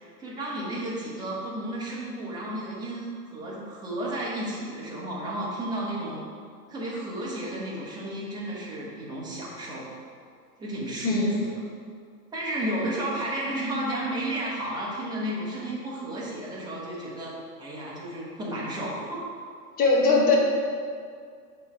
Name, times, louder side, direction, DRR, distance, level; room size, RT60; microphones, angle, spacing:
voice 1, 0.0-6.2 6.7-9.9 10.6-11.4 12.3-19.2, right 1 dB, 10° right, -6 dB, 1.2 m, -32 dB
voice 2, 19.8-20.4, left 3 dB, 20° left, -2 dB, 1.0 m, -20 dB
7.6 x 3.2 x 4.3 m, 2.2 s
hypercardioid pair, 125°, 48 cm